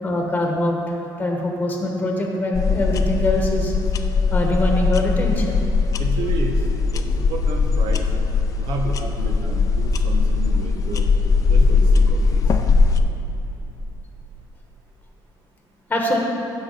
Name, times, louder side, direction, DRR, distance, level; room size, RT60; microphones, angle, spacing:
voice 1, 0.0-3.7 4.3-5.6 15.9-16.2, left 1 dB, 20° left, 0 dB, 1.1 m, -23 dB
sound 1, 2.5-13.0, left 4 dB, 45° left, 0.5 m, -19 dB
voice 2, 6.0-6.6 6.9-8.0 8.6-11.1 11.5-13.1, right 3 dB, 80° right, 1 dB, 1.2 m, -31 dB
15.0 x 6.2 x 4.0 m, 2.9 s
cardioid pair, 140°, 8 cm